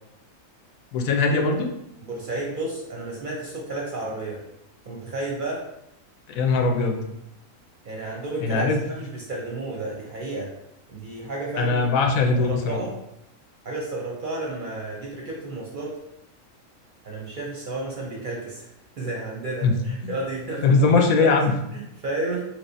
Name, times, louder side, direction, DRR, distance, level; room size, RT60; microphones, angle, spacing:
voice 1, 0.9-1.7 6.3-7.0 8.4-8.8 11.5-12.8 19.6-19.8 20.0-20.1 20.6-21.6, left 4 dB, 85° left, 3 dB, 1.0 m, -20 dB
voice 2, 2.0-4.4 4.9-5.6 7.8-8.7 8.9-10.5 10.9-11.8 12.1-12.9 13.6-16.0 17.0-18.7 19.0-20.6 21.1-21.3 21.7-22.4, right 2 dB, 50° right, -3 dB, 0.6 m, -32 dB
3.3 x 3.0 x 2.6 m, 0.82 s
omnidirectional pair, 1.4 m